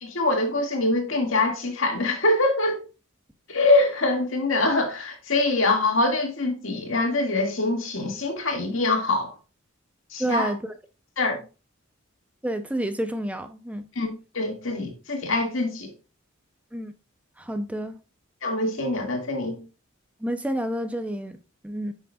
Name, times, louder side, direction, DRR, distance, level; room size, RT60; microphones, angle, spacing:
voice 1, 0.0-2.8 3.5-9.3 10.1-10.5 11.2-11.4 14.0-15.9 18.4-19.6, left 2 dB, 70° left, 1.9 m, -24 dB
voice 2, 10.2-10.6 12.4-13.8 16.7-16.9 17.4-18.0 20.2-21.4 21.6-21.9, right 1 dB, 5° right, 0.5 m, -29 dB
9.6 x 6.2 x 2.3 m
head